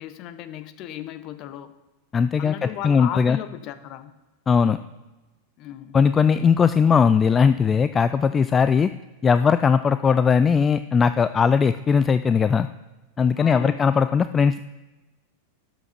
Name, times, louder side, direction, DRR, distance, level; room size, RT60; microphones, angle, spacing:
voice 1, 0.0-1.7 2.4-4.1 5.6-6.2 13.4-13.9, left 11 dB, 40° left, 12 dB, 0.8 m, -36 dB
voice 2, 2.1-3.4 4.5-4.8 5.9-8.9 9.2-12.7 13.2-14.6, left 6 dB, 20° left, 12 dB, 0.3 m, -19 dB
12.0 x 6.0 x 5.9 m, 1.1 s
figure-of-eight pair, 90°, 0 cm